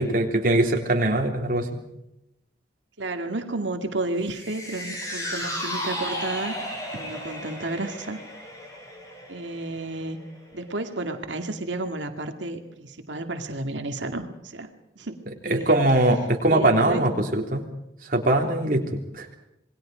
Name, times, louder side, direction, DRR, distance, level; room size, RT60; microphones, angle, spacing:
voice 1, 0.0-1.8 15.5-17.6 18.0-18.9 19.1-19.3, right 1 dB, 50° right, 2 dB, 3.5 m, -22 dB
voice 2, 3.0-6.6 7.0-8.2 9.3-10.2 10.5-15.2 15.4-15.8 16.5-17.1, right 2 dB, 85° right, 5 dB, 2.1 m, -32 dB
sound 1, 4.2-10.7 11.0-11.1, equal, 20° left, 6.8 m, -34 dB
27.5 x 21.5 x 5.1 m, 0.86 s
head